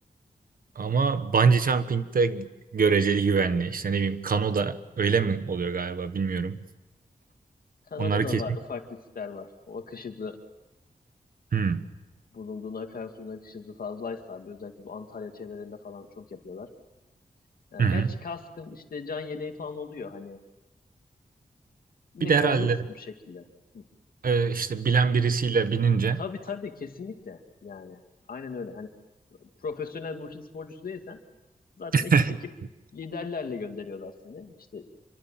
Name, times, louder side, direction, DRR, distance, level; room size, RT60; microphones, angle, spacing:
voice 1, 0.7-6.6 8.0-8.4 11.5-11.8 17.8-18.1 22.2-22.8 24.2-26.2 31.9-32.4, right 5 dB, 75° right, 1.4 m, -24 dB
voice 2, 7.9-10.4 12.3-16.7 17.7-20.4 22.1-23.4 23.7-23.9 26.2-28.0 28.3-28.9 29.4-31.2 31.8-32.1 32.9-34.9, left 5 dB, 85° left, 2.3 m, -37 dB
27.0 x 24.5 x 7.5 m
wide cardioid pair, 90°, 15 cm